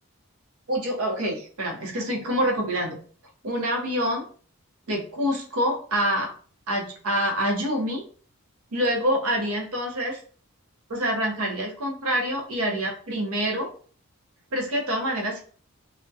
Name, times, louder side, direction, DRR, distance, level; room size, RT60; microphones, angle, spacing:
voice 1, 0.7-3.0 3.4-4.3 4.9-6.3 6.7-8.0 8.7-10.2 10.9-13.7 14.5-15.4, equal, 75° right, 1 dB, 0.7 m, -26 dB
2.3 x 2.1 x 2.6 m, 0.43 s
head